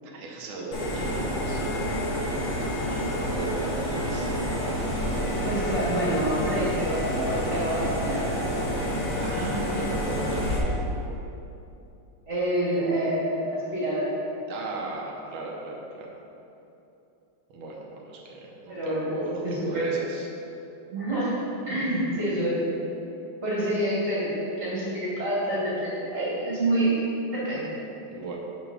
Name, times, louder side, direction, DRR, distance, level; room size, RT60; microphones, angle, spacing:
voice 1, 0.0-1.9 2.8-4.4 8.4-10.3 10.6-10.8 14.5-16.1 17.5-20.3 28.1-28.4, right 3 dB, 75° right, -2 dB, 1.8 m, -36 dB
sound 1, 0.7-10.6, equal, 85° left, 2.4 m, -28 dB
voice 2, 5.4-8.2 12.3-14.2 18.7-19.9 20.9-22.8 23.4-27.0 27.3-27.7, right 1 dB, 30° right, -9 dB, 2.3 m, -27 dB
6.7 x 6.3 x 5.5 m, 2.8 s
omnidirectional pair, 2.3 m